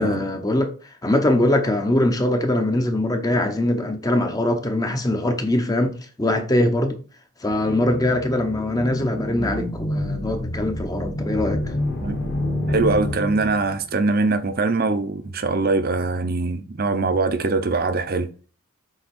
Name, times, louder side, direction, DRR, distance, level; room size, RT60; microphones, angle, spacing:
voice 1, 0.0-7.0 7.4-11.7, left 1 dB, 15° left, 0.7 m, -22 dB
sound 1, 7.5-13.8, left 1 dB, 40° left, 1.3 m, -28 dB
voice 2, 12.7-18.3, right 3 dB, 45° right, 0.7 m, -22 dB
7.9 x 3.5 x 4.3 m
head